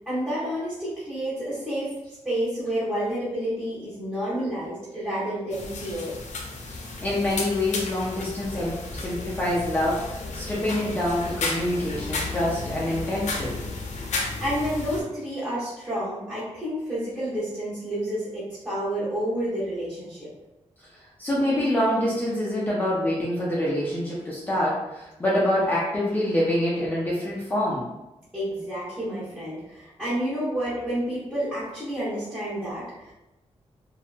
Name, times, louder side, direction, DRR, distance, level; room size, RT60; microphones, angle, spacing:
voice 1, 0.1-6.2 12.5-12.7 14.4-20.3 28.3-33.1, equal, 10° right, -12 dB, 0.8 m, -30 dB
sound 1, 5.5-15.0, left 3 dB, 90° left, 0.4 m, -33 dB
voice 2, 6.7-13.6 20.9-27.9, left 1 dB, 15° left, -8 dB, 0.4 m, -26 dB
2.7 x 2.2 x 2.4 m, 0.97 s
wide cardioid pair, 175°, 12 cm